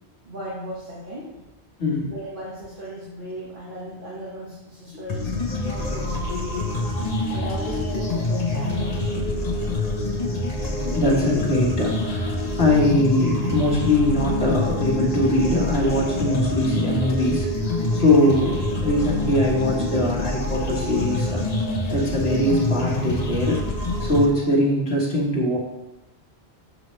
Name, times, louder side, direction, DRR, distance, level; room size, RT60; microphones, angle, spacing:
voice 1, 0.3-1.3 2.1-6.7 7.3-9.8, equal, 50° right, -7 dB, 1.7 m, -36 dB
voice 2, 1.8-2.1 4.9-5.0 7.4-7.5 10.8-21.4 21.9-23.6 24.0-25.6, left 1 dB, 70° left, -4 dB, 1.8 m, -22 dB
sound 1, 5.1-24.2, left 2 dB, 40° left, 1.0 m, -26 dB
7.5 x 6.6 x 3.2 m, 0.96 s
omnidirectional pair, 1.1 m